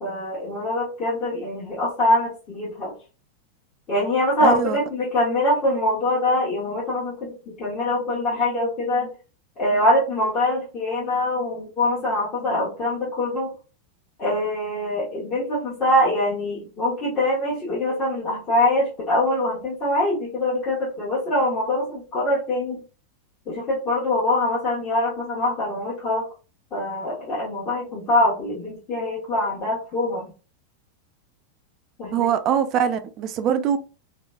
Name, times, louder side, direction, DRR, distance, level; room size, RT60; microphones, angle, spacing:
voice 1, 0.0-2.9 3.9-9.1 9.6-13.5 14.2-22.8 23.5-26.3 26.7-30.3 32.0-32.3, left 1 dB, 30° left, 1.0 m, -23 dB
voice 2, 4.4-4.8 32.1-33.8, right 8 dB, 35° right, 0.3 m, -22 dB
3.0 x 2.2 x 2.3 m
figure-of-eight pair, 90°, 0 cm